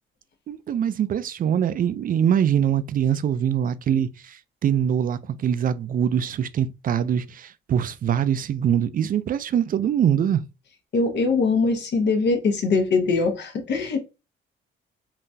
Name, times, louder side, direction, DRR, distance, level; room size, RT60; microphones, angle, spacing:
voice 1, 0.5-10.4, right 9 dB, 45° right, 0.4 m, -23 dB
voice 2, 10.9-14.0, left 4 dB, 60° left, 0.9 m, -22 dB
3.7 x 2.4 x 2.7 m
cardioid pair, 90°, 20 cm